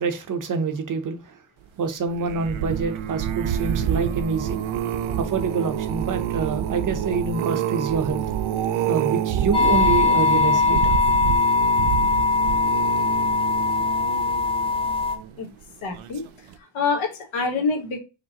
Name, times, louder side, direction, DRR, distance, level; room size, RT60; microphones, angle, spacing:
voice 1, 0.0-1.4 1.8-4.6 5.2-8.2 8.9-11.0, right 5 dB, 40° right, 0.7 m, -26 dB
sound 1, 2.1-15.4 15.9-16.3 16.5-16.6, right 9 dB, 85° right, 0.5 m, -27 dB
sound 2, 9.5-15.2, left 4 dB, 10° left, 0.5 m, -21 dB
voice 2, 15.8-16.2 16.7-18.0, left 4 dB, 80° left, 1.4 m, -25 dB
5.0 x 3.0 x 2.8 m
wide cardioid pair, 155°, 47 cm